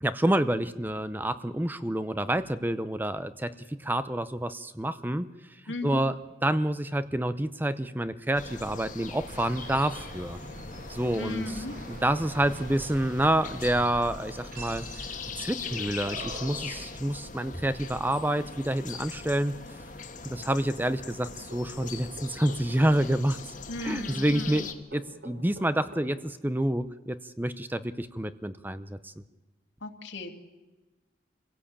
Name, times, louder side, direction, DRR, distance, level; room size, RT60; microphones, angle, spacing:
voice 1, 0.0-5.3 5.8-6.1 6.4-10.4 10.9-14.8 15.4-19.5 20.2-23.4 23.8-24.7 24.9-29.1, right 1 dB, 10° right, 12 dB, 0.7 m, -28 dB
voice 2, 5.7-6.0 11.1-11.7 23.7-24.7 29.8-30.3, left 2 dB, 80° left, 5 dB, 2.6 m, -36 dB
sound 1, 8.3-24.7, left 4 dB, 45° left, 1.6 m, -41 dB
fine arts elevator ambi edit, 9.3-16.8, right 1 dB, 50° right, 4.9 m, -44 dB
sound 2, 21.5-22.9 24.5-26.1, right 1 dB, 75° right, 6.4 m, -46 dB
26.5 x 17.0 x 8.7 m, 1.2 s
head